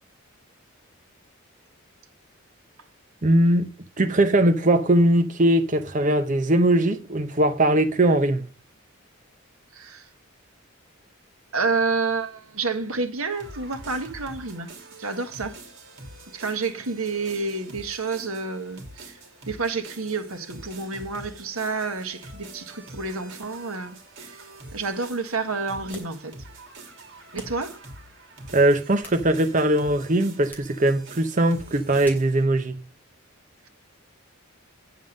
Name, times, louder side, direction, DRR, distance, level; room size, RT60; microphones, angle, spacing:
voice 1, 3.2-3.7 4.0-8.5 28.5-32.8, right 1 dB, 35° right, 0.8 m, -20 dB
voice 2, 9.7-10.1 11.5-14.7 15.0-15.6 16.3-19.2 19.5-26.3 27.3-27.8, right 4 dB, 85° right, 1.5 m, -29 dB
sound 1, 13.3-32.4, right 2 dB, 60° right, 2.9 m, -45 dB
sound 2, 25.9-26.2 27.3-27.7 28.7-29.6 30.5-30.8 32.0-32.4, left 1 dB, 10° left, 3.0 m, -46 dB
9.4 x 7.4 x 5.2 m
head